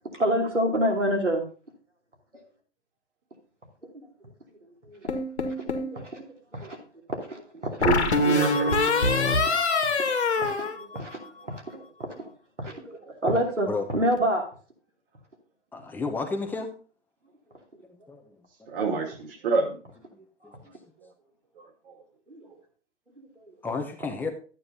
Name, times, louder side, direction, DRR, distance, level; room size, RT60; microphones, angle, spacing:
voice 1, 0.1-1.5 2.3-2.4 3.8-4.1 4.6-5.2 5.5-6.3 6.5-6.8 7.1-7.9 9.3-9.6 9.8-12.3 12.6-14.4 22.3-22.5 23.2-23.5, equal, 85° right, 0 dB, 2.9 m, -29 dB
sound 1, 5.1-5.9 7.8-11.4, left 3 dB, 70° left, 1.5 m, -24 dB
voice 2, 7.8-8.7 13.1-13.2 18.7-19.8 20.7-21.1 21.5-22.0 22.4-22.6, right 4 dB, 50° right, 2 dB, 2.3 m, -29 dB
voice 3, 15.7-16.7 18.1-18.2 23.6-24.3, left 4 dB, 5° left, 4 dB, 0.9 m, -31 dB
12.5 x 9.0 x 2.7 m, 0.40 s
figure-of-eight pair, 115°, 35 cm